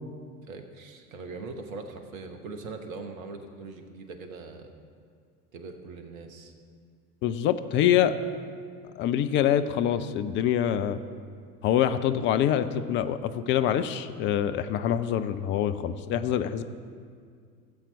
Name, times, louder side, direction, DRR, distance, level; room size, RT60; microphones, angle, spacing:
voice 1, 0.5-4.7 5.5-6.5, right 3 dB, 60° right, 6 dB, 1.3 m, -41 dB
voice 2, 7.2-8.1 9.0-11.0 11.6-16.6, left 10 dB, 25° left, 10 dB, 0.4 m, -25 dB
17.5 x 7.5 x 4.0 m, 2.1 s
figure-of-eight pair, 70°, 46 cm